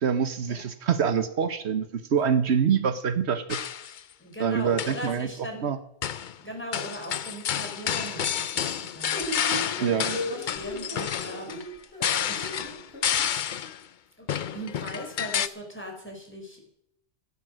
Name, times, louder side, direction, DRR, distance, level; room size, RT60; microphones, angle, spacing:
voice 1, 0.0-3.6 4.4-5.8 9.8-10.2, right 7 dB, 80° right, 11 dB, 1.3 m, -25 dB
sound 1, 3.5-4.0 4.6-5.1 6.0-6.3 6.7-13.8 14.3-15.5, left 9 dB, 55° left, 0.7 m, -30 dB
voice 2, 4.2-5.7 6.4-11.6 12.3-12.7 13.5-13.6 14.2-14.3 14.5-16.7, equal, 10° left, 2 dB, 4.2 m, -39 dB
sound 2, 9.1-13.3, left 1 dB, 70° left, 4.3 m, -36 dB
15.0 x 10.5 x 6.3 m, 0.74 s
omnidirectional pair, 1.1 m